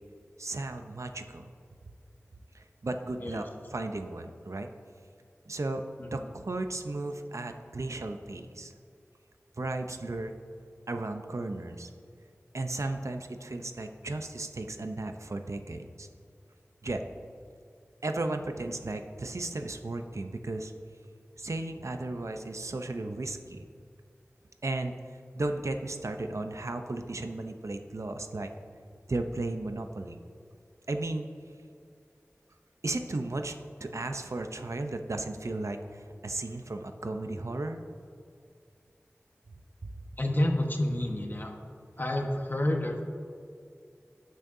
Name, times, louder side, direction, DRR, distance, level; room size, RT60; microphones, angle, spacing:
voice 1, 0.4-1.5 2.5-4.7 5.5-8.7 9.6-10.3 10.9-11.9 12.5-16.1 16.8-17.0 18.0-20.7 21.4-23.7 24.6-24.9 25.3-28.5 29.1-30.2 30.9-31.2 32.8-37.8 39.8-39.9, right 2 dB, 75° right, 6 dB, 0.7 m, -35 dB
voice 2, 6.0-6.3 40.2-41.5 42.0-43.1, left 1 dB, 40° left, 2 dB, 1.3 m, -29 dB
18.5 x 6.4 x 2.7 m, 2.3 s
wide cardioid pair, 45°, 5 cm